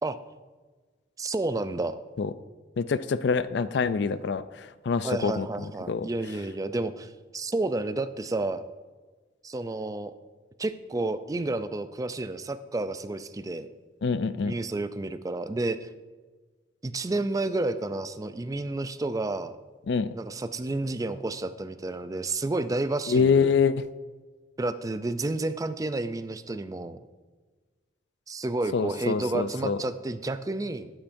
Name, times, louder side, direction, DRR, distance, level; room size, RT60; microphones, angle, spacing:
voice 1, 1.2-2.0 5.0-8.6 9.4-10.1 10.6-13.7 14.4-15.9 16.8-19.6 20.1-23.5 24.6-27.0 28.3-30.9, right 2 dB, 20° right, 12 dB, 0.4 m, -30 dB
voice 2, 2.8-6.1 14.0-14.6 19.9-20.1 23.1-23.9 28.7-29.8, left 5 dB, 65° left, 14 dB, 0.4 m, -26 dB
12.5 x 8.9 x 2.6 m, 1.4 s
head